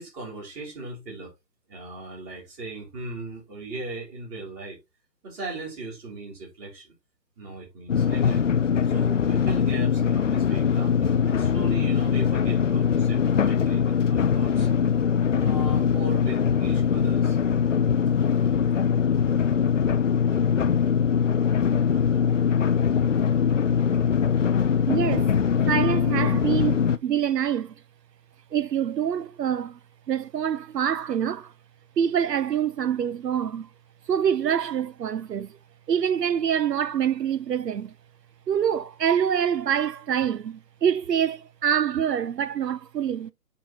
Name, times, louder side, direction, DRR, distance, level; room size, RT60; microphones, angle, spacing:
voice 1, 0.0-1.3 1.7-4.8 5.2-6.9 7.4-8.4 8.9-14.7 15.4-17.4, right 2 dB, 15° right, 2.7 m, -38 dB
sound 1, 7.9-27.0, left 7 dB, 50° left, 0.5 m, -22 dB
voice 2, 24.9-25.3 25.7-27.7 28.5-29.8 30.1-31.5 32.0-33.7 34.1-35.6 35.9-37.9 38.5-43.3, right 8 dB, 75° right, 0.6 m, -25 dB
10.5 x 3.9 x 2.8 m
figure-of-eight pair, 145°, 49 cm